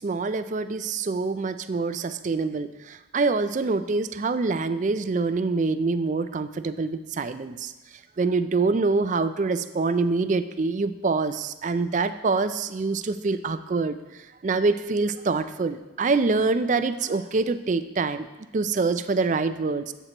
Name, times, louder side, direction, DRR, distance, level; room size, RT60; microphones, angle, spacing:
voice 1, 0.0-7.7 8.2-14.0 14.4-18.3 18.5-19.9, right 3 dB, 40° right, 12 dB, 0.4 m, -25 dB
11.5 x 8.0 x 3.0 m, 1.1 s
head